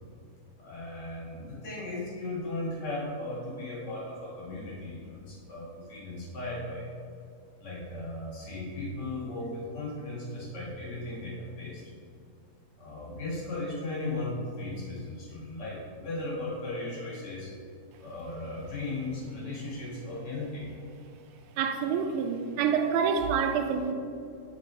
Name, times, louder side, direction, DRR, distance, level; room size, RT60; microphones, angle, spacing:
voice 1, 0.6-6.9 7.6-11.9 12.8-17.5 18.0-20.7, left 2 dB, 45° left, -6 dB, 1.6 m, -36 dB
voice 2, 21.6-23.9, right 6 dB, 80° right, 6 dB, 1.9 m, -27 dB
6.4 x 6.2 x 3.2 m, 2.4 s
omnidirectional pair, 3.5 m